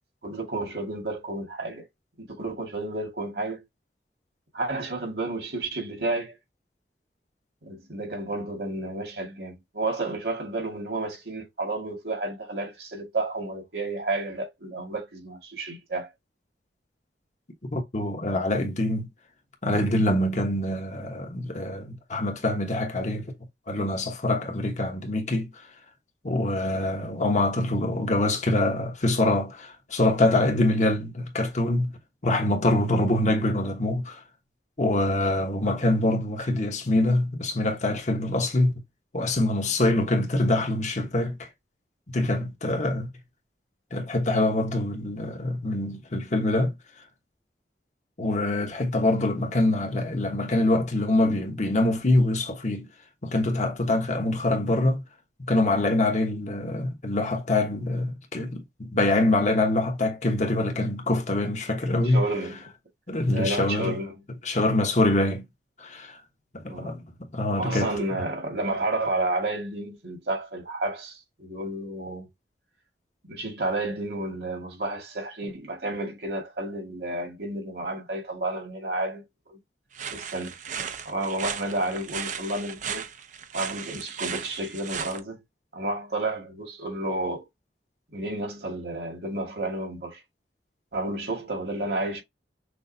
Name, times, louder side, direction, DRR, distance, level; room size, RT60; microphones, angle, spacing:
voice 1, 0.2-1.8 2.2-3.6 4.5-6.4 7.6-16.1 62.0-62.6 63.3-64.1 66.7-67.0 67.5-72.3 73.3-79.6 80.1-80.8 81.0-83.1 83.5-85.4 85.7-87.5 88.1-90.2 90.9-92.2, right 2 dB, 70° right, 1.9 m, -31 dB
voice 2, 17.7-19.1 19.6-23.3 23.7-25.6 26.2-32.0 32.2-34.2 34.8-38.7 39.1-41.5 42.1-43.1 43.9-46.8 48.2-52.9 53.2-55.0 55.4-62.2 63.1-63.9 64.4-65.4 65.8-66.2 66.5-67.0 67.3-67.9, left 1 dB, 45° left, 1.2 m, -25 dB
sound 1, 79.9-85.2, right 7 dB, 45° right, 0.6 m, -36 dB
6.3 x 2.5 x 2.7 m
head